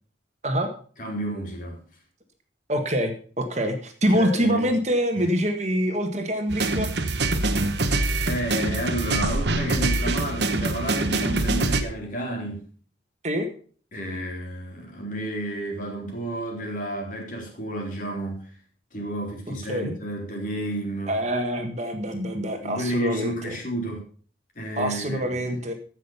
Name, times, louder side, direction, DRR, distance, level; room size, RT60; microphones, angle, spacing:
voice 1, 1.0-1.8 4.1-4.8 8.2-12.6 13.9-18.5 18.9-21.1 22.6-24.0 24.6-25.5, right 1 dB, 45° left, 3.7 m, -31 dB
voice 2, 2.7-6.9 13.2-13.5 19.7-19.9 21.1-23.5 24.8-25.7, equal, 35° right, 1.5 m, -25 dB
sound 1, 6.5-11.8, right 2 dB, 65° right, 1.1 m, -24 dB
15.0 x 6.3 x 5.6 m
head